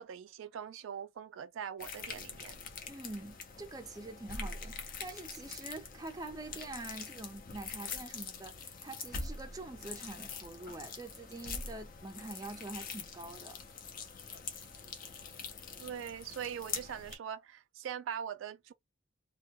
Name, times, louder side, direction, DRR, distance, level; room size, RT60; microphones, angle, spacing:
voice 1, 0.0-2.6 15.8-18.7, right 8 dB, 85° right, 0.3 m, -42 dB
sound 1, 1.8-17.2, left 4 dB, 45° left, 0.6 m, -44 dB
voice 2, 2.9-13.6, right 2 dB, 20° right, 0.4 m, -45 dB
2.3 x 2.2 x 2.7 m
head